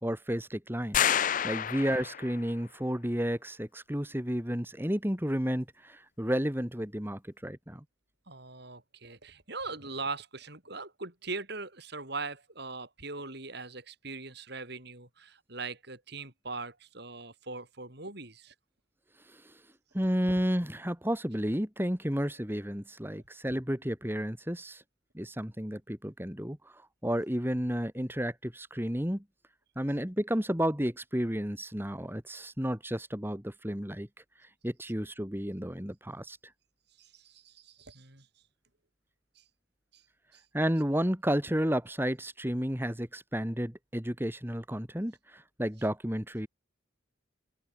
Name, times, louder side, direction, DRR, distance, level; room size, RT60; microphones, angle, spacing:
voice 1, 0.0-7.8 19.3-19.5 19.9-24.8 25.1-29.2 29.8-34.1 34.6-36.4 40.5-46.5, equal, 10° right, 3.0 m, -32 dB
sound 1, 0.9-2.4, left 9 dB, 40° left, 0.5 m, -28 dB
voice 2, 8.3-18.5 37.0-38.3 39.4-39.5 39.9-40.0 40.3-40.4, right 3 dB, 55° right, 6.7 m, -41 dB
head